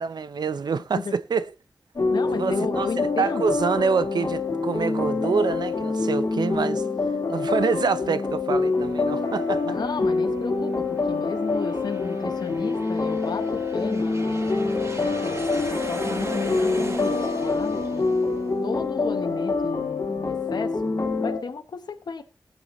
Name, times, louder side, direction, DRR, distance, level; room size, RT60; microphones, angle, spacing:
voice 1, 0.0-1.5 2.3-2.9 3.2-6.8 7.3-9.8, right 5 dB, 80° right, 0.7 m, -26 dB
sound 1, 2.0-21.4, left 3 dB, 45° left, 2.1 m, -26 dB
voice 2, 2.1-3.5 9.6-18.1 18.6-22.2, left 5 dB, 75° left, 1.0 m, -34 dB
Aircraft, 8.6-19.8, right 2 dB, 40° right, 6.3 m, -38 dB
17.5 x 7.8 x 3.1 m
wide cardioid pair, 75°, 7 cm